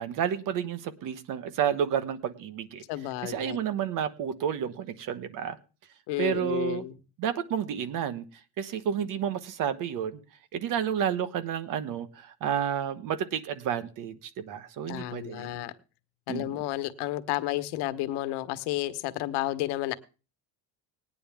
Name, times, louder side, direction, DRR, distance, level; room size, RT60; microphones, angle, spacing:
voice 1, 0.0-2.8 3.2-5.6 6.2-6.8 7.2-8.2 8.6-10.2 10.5-15.5 16.3-16.6, right 9 dB, 55° right, 13 dB, 1.3 m, -30 dB
voice 2, 2.9-3.6 6.1-6.9 14.9-15.7 16.3-19.9, left 15 dB, 85° left, 11 dB, 1.2 m, -31 dB
19.0 x 9.7 x 3.5 m, 0.34 s
cardioid pair, 155°, 39 cm